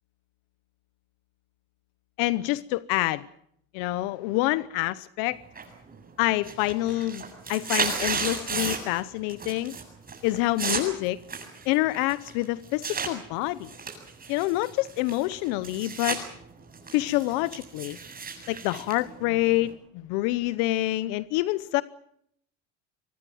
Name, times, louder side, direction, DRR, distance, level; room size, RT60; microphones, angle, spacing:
voice 1, 2.2-3.3 3.7-5.4 6.2-7.2 7.5-9.7 10.2-11.2 11.7-13.7 14.3-16.2 16.9-18.0 18.5-21.8, left 18 dB, 80° left, 0.9 m, -27 dB
sound 1, 5.6-6.0 6.3-9.0 9.3-9.8 10.1-13.1 13.6-16.2 16.6-19.7, right 5 dB, 25° right, 7.9 m, -33 dB
24.5 x 19.5 x 7.8 m
supercardioid pair, 115°, 34 cm